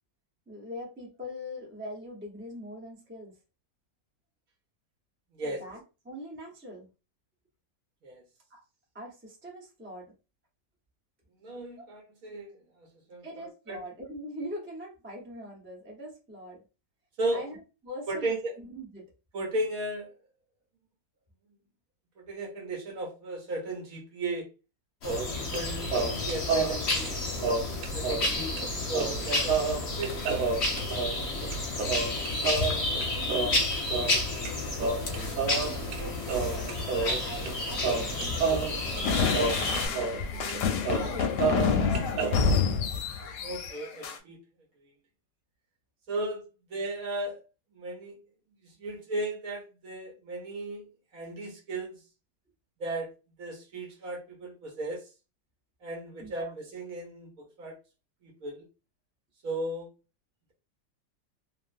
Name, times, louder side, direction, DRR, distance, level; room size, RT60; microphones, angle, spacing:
voice 1, 0.5-3.4 5.4-6.9 8.5-8.6 8.9-10.1 11.8-11.9 13.2-16.6 17.3-19.1 33.1-33.7 35.1-40.7 40.9-42.4 56.2-56.5, equal, 15° right, -3 dB, 0.4 m, -43 dB
voice 2, 11.4-12.5 12.8-13.8 17.2-17.4 18.1-18.5 19.3-20.1 22.2-24.5 25.0-27.2 27.9-28.5 28.9-30.3 43.4-44.4 46.1-47.4 47.7-48.2 48.6-50.9 51.1-52.0 52.8-53.1 53.4-55.1 55.8-57.7 58.2-58.6 59.4-59.9, right 1 dB, 60° right, -1 dB, 1.0 m, -35 dB
sound 1, 25.0-39.9, left 2 dB, 50° left, 0.9 m, -31 dB
sound 2, 25.1-25.6 25.9-28.3 28.6-28.7 28.9-34.5 34.8-36.0 36.3-37.6 37.8-40.2 40.5-40.6 40.8-42.4, right 5 dB, 90° right, 1.3 m, -30 dB
sound 3, 39.0-44.2, left 5 dB, 75° left, 1.1 m, -28 dB
2.9 x 2.5 x 2.5 m, 0.31 s
omnidirectional pair, 2.0 m